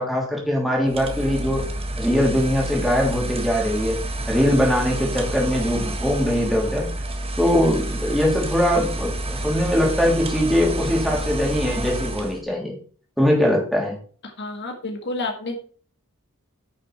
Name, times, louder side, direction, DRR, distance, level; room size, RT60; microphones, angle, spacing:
voice 1, 0.0-1.6 2.0-4.0 4.3-6.9 7.4-12.7 13.2-14.0, equal, ahead, -2 dB, 3.4 m, -21 dB
sound 1, 0.9-12.4, right 1 dB, 25° right, 1.5 m, -29 dB
voice 2, 14.4-15.6, left 2 dB, 55° left, 3 dB, 1.9 m, -29 dB
9.8 x 6.4 x 4.3 m, 0.44 s
head